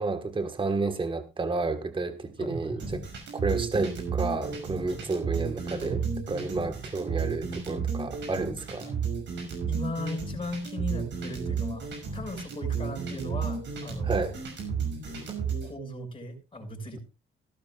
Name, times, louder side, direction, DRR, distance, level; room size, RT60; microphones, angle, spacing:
voice 1, 0.0-3.0 3.3-6.0 6.3-8.8 14.0-14.3, right 3 dB, 25° right, 1.6 m, -30 dB
voice 2, 2.4-2.9 4.9-5.0 5.7-6.4 8.7-9.0 9.7-14.4 15.6-17.0, equal, 25° left, 6.4 m, -37 dB
sound 1, 2.8-15.7, right 6 dB, 65° right, 5.9 m, -32 dB
17.0 x 12.5 x 2.4 m
cardioid pair, 90°, 20 cm